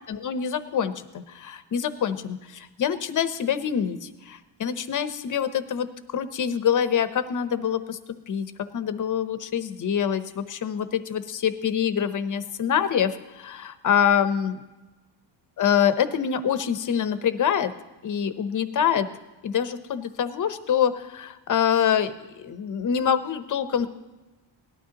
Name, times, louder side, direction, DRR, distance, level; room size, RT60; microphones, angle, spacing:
voice 1, 0.1-8.0 8.3-8.5 8.7-14.6 15.6-17.7 18.0-19.1 19.4-23.9, left 8 dB, 40° left, 11 dB, 0.8 m, -25 dB
18.5 x 12.0 x 2.9 m, 1.1 s
cardioid pair, 150°, 46 cm